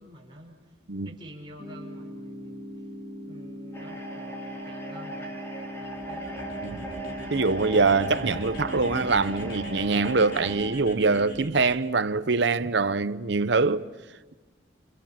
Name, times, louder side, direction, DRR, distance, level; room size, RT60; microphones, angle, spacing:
voice 1, 0.0-2.9 3.2-6.4, right 1 dB, 25° right, 5.5 m, -49 dB
sound 1, 1.6-11.6, equal, 40° left, 6.1 m, -40 dB
sound 2, 3.7-10.6, right 1 dB, 15° left, 3.8 m, -38 dB
sound 3, 5.8-11.9, equal, 55° left, 5.4 m, -43 dB
voice 2, 7.3-13.9, right 4 dB, 65° right, 0.8 m, -24 dB
29.5 x 28.5 x 5.9 m
head